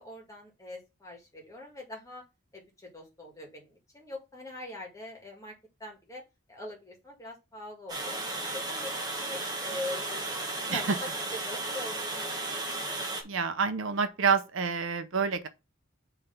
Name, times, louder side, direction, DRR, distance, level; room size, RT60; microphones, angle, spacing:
voice 1, 0.0-2.2 2.5-5.5 5.8-6.2 6.5-8.2 8.5-12.9, left 2 dB, 15° left, 1.8 m, -43 dB
Water, 7.9-13.2, right 2 dB, 20° right, 1.3 m, -34 dB
voice 2, 13.2-15.5, right 5 dB, 70° right, 0.7 m, -28 dB
5.6 x 3.4 x 5.7 m
head